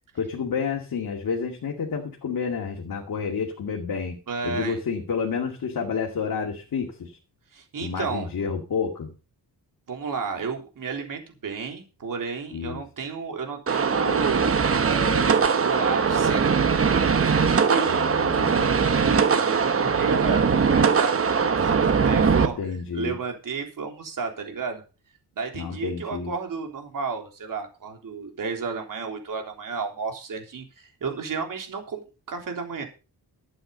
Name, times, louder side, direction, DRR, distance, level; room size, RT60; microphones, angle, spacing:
voice 1, 0.1-4.2 4.4-7.1 7.8-9.1 12.5-12.8 17.9-18.7 22.6-23.1 25.5-26.3, left 6 dB, 60° left, 1 dB, 2.5 m, -29 dB
voice 2, 4.3-4.8 7.5-8.3 9.9-14.5 14.8-18.0 18.9-24.8 25.4-32.8, right 5 dB, 55° right, 3 dB, 3.6 m, -32 dB
sound 1, 13.7-22.5, right 5 dB, 35° right, 1.1 m, -21 dB
12.0 x 8.8 x 5.3 m, 0.32 s
wide cardioid pair, 155°, 39 cm